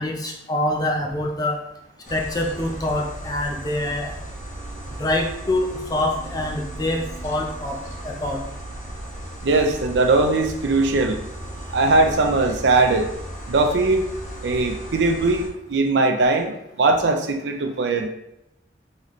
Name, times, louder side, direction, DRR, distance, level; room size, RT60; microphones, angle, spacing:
voice 1, 0.0-1.6 2.1-4.2 5.0-7.8 8.0-8.4, left 1 dB, 20° left, 1 dB, 0.5 m, -25 dB
sound 1, 2.0-15.5, right 1 dB, 45° left, 1.1 m, -36 dB
voice 2, 9.4-11.2 11.7-13.1 13.5-14.0 14.4-18.1, right 3 dB, 85° right, 5 dB, 0.5 m, -20 dB
4.1 x 3.1 x 3.0 m, 0.84 s
head